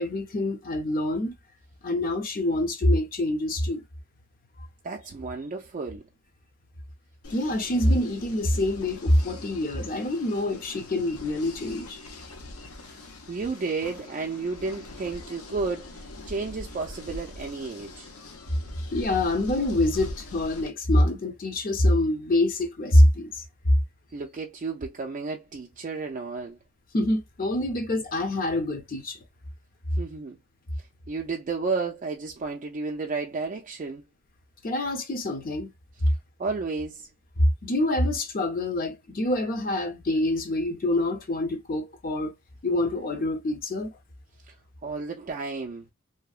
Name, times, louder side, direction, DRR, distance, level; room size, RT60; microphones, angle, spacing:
voice 1, 0.0-1.3 1.8-3.8 4.6-4.7 7.3-12.0 18.9-23.4 26.9-29.2 34.6-35.7 37.4-42.3 42.6-43.9, left 1 dB, 40° left, 0.6 m, -25 dB
voice 2, 4.8-6.0 12.8-18.1 24.1-26.6 30.0-30.4 31.1-34.0 36.4-37.1 44.5-44.6 44.8-45.9, right 4 dB, 35° right, 0.4 m, -32 dB
sound 1, 7.2-20.7, left 2 dB, 85° left, 0.7 m, -43 dB
2.7 x 2.1 x 2.3 m
head